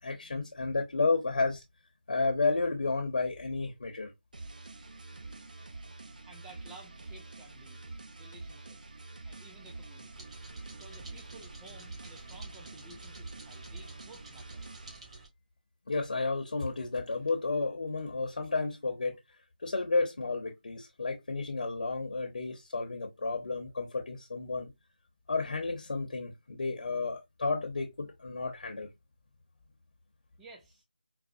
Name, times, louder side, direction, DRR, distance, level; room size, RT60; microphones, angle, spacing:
voice 1, 0.0-1.6 2.1-4.1 15.9-19.2 19.6-24.7 25.3-28.9, left 3 dB, 65° left, 0.7 m, -32 dB
sound 1, 4.3-15.0, right 3 dB, 60° right, 0.6 m, -47 dB
voice 2, 6.3-9.0 9.2-10.3 10.7-14.7 30.4-30.8, right 2 dB, 5° right, 0.4 m, -54 dB
sound 2, 10.1-15.3, right 3 dB, 40° right, 1.3 m, -51 dB
4.0 x 2.1 x 2.5 m
figure-of-eight pair, 165°, 5 cm